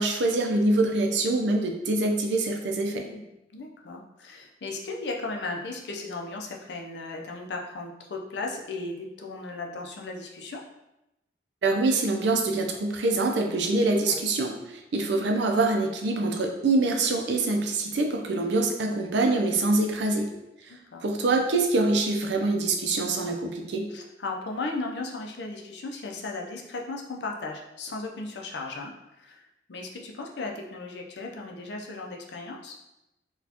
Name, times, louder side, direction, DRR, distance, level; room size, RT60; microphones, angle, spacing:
voice 1, 0.0-3.0 11.6-20.3 21.0-23.9, right 2 dB, 75° right, 3 dB, 0.5 m, -25 dB
voice 2, 2.9-3.2 3.5-10.6 14.0-14.2 20.7-21.0 23.9-29.4 29.7-32.8, left 3 dB, 70° left, 1 dB, 0.5 m, -36 dB
4.1 x 2.3 x 2.8 m, 0.93 s
head